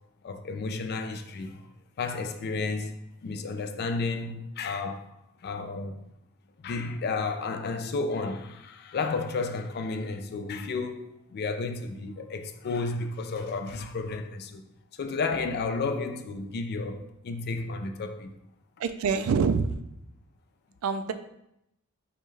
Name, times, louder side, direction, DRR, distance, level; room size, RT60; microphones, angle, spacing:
voice 1, 0.2-1.7 2.0-3.0 3.2-5.0 5.4-6.0 6.6-14.6 15.0-18.3, left 3 dB, 50° left, 0.4 m, -32 dB
voice 2, 18.8-19.8 20.8-21.1, right 5 dB, 75° right, 0.3 m, -25 dB
5.3 x 2.2 x 3.2 m
head